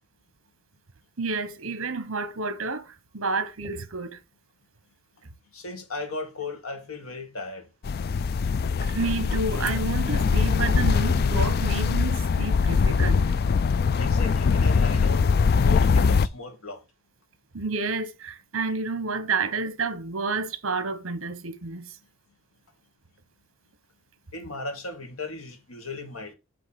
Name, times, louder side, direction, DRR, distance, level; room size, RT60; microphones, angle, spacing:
voice 1, 1.2-4.2 8.9-13.3 17.5-21.9, right 4 dB, 65° right, 1.1 m, -30 dB
voice 2, 5.5-7.7 14.0-15.3 15.6-16.8 24.3-26.3, left 3 dB, 80° left, 1.7 m, -36 dB
sound 1, 7.8-16.3, left 5 dB, 45° left, 0.3 m, -22 dB
8.2 x 3.1 x 5.8 m
head